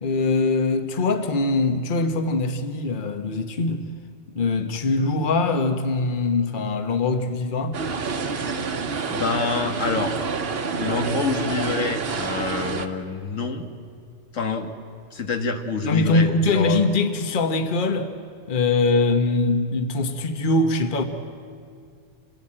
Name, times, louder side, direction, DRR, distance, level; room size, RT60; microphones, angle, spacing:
voice 1, 0.0-3.8 4.3-7.8 15.8-18.1 18.5-21.0, left 3 dB, 45° left, 1.2 m, -22 dB
sound 1, 7.7-12.9, right 5 dB, 55° right, 1.2 m, -28 dB
voice 2, 9.1-10.2 10.8-13.7 14.3-14.7 15.1-16.9, left 4 dB, 80° left, 1.8 m, -27 dB
27.5 x 17.5 x 8.8 m
omnidirectional pair, 1.3 m